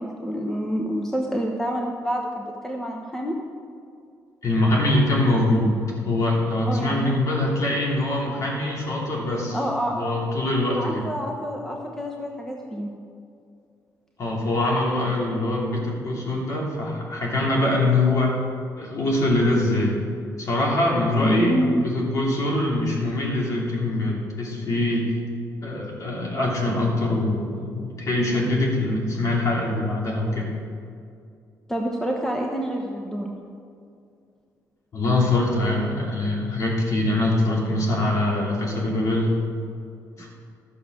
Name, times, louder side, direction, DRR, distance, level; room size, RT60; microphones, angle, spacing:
voice 1, 0.0-3.4 6.7-7.2 9.5-10.2 10.7-12.9 21.2-21.8 31.7-33.4 40.2-40.3, right 1 dB, 5° left, 0 dB, 1.0 m, -27 dB
voice 2, 4.4-5.8 6.0-9.6 9.9-11.1 14.2-18.4 18.8-19.9 20.4-25.1 25.6-30.5 34.9-39.3 40.2-40.3, left 2 dB, 50° left, -2 dB, 2.9 m, -23 dB
12.5 x 6.7 x 6.5 m, 2.4 s
cardioid pair, 125°, 7 cm